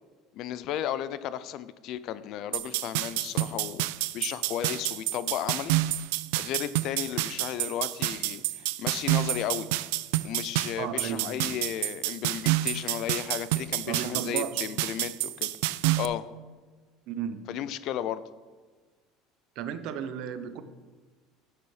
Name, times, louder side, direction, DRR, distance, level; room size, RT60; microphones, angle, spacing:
voice 1, 0.3-3.9 4.1-5.7 6.4-9.7 10.2-15.5 16.0-16.3 17.5-18.2, left 11 dB, 45° left, 15 dB, 0.4 m, -34 dB
sound 1, 2.5-16.0, right 17 dB, 85° right, 0.3 m, -29 dB
voice 2, 10.8-11.6 13.8-14.7 17.1-17.5 19.6-20.6, right 8 dB, 50° right, 11 dB, 0.7 m, -34 dB
10.0 x 6.8 x 4.8 m, 1.4 s
cardioid pair, 175°, 0 cm